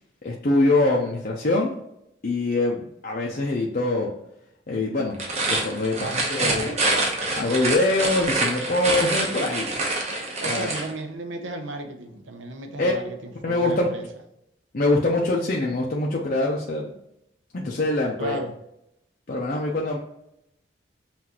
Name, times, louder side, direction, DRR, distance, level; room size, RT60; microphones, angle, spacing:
voice 1, 0.2-1.7 2.2-4.1 4.7-5.2 5.5-6.7 7.3-9.7 10.4-10.7 12.8-12.9 13.4-13.9 14.7-16.9 17.5-18.4 19.3-20.0, left 2 dB, 50° left, -2 dB, 0.6 m, -24 dB
sound 1, 5.1-10.9, right 2 dB, 35° right, 0.8 m, -26 dB
voice 2, 6.0-6.8 10.4-14.1 18.2-18.5, right 1 dB, 90° right, 5 dB, 0.8 m, -34 dB
5.7 x 2.6 x 2.9 m, 0.80 s
head